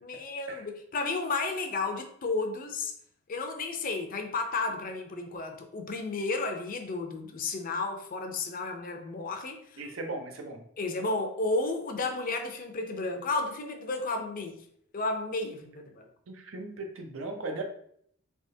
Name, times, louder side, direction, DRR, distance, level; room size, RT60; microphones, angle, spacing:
voice 1, 0.0-2.9 3.3-9.8 10.8-14.6 14.9-16.1, left 3 dB, 45° left, 5 dB, 0.5 m, -32 dB
voice 2, 9.8-10.6 16.3-17.6, right 2 dB, 80° right, 4 dB, 0.6 m, -38 dB
3.4 x 3.3 x 2.7 m, 0.66 s
head